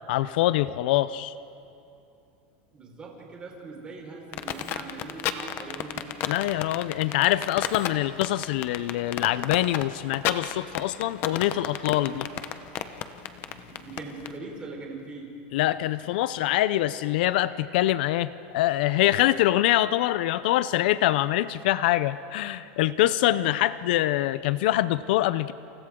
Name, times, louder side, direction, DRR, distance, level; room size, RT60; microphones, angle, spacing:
voice 1, 0.1-1.3 6.3-12.3 15.5-25.5, left 14 dB, 70° left, 15 dB, 0.6 m, -24 dB
voice 2, 2.7-6.0 12.0-12.2 13.4-15.3 23.3-23.5, right 3 dB, 20° right, -1 dB, 4.8 m, -41 dB
sound 1, 4.3-14.3, left 12 dB, 40° left, 1.1 m, -31 dB
29.5 x 28.5 x 3.8 m, 2.8 s
supercardioid pair, 150°, 5 cm